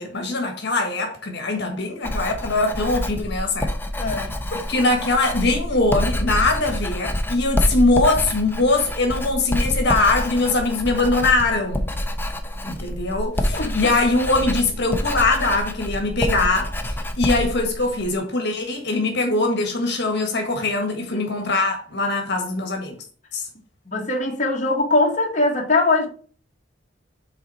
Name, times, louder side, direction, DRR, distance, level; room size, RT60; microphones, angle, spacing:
voice 1, 0.0-4.1 4.5-11.9 12.6-16.7 17.2-23.0 23.3-23.4, left 2 dB, 60° left, 1.5 m, -22 dB
Writing, 2.0-18.1, left 1 dB, 10° left, 0.8 m, -27 dB
voice 2, 4.0-4.4 13.5-13.8 21.1-21.2 23.9-26.1, left 2 dB, 40° left, 1.5 m, -21 dB
6.8 x 4.2 x 4.2 m
head